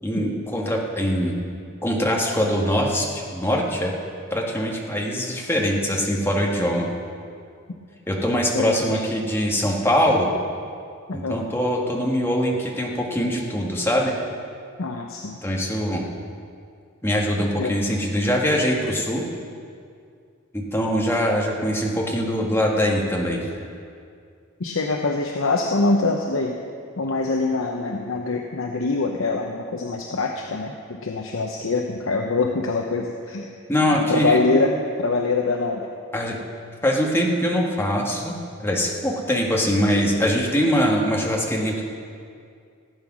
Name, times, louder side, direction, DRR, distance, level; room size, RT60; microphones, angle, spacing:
voice 1, 0.0-1.4 1.8-3.9 4.3-6.9 8.1-10.3 11.1-14.1 15.4-16.0 17.0-19.2 20.5-23.4 33.7-34.4 36.1-36.4 36.8-41.9, equal, 10° left, -1 dB, 1.7 m, -23 dB
voice 2, 8.5-8.9 11.1-11.4 14.8-15.4 17.4-17.8 24.6-26.6 27.0-33.5 33.9-35.9, left 3 dB, 75° left, 2 dB, 0.8 m, -24 dB
15.5 x 8.8 x 6.1 m, 2.3 s
head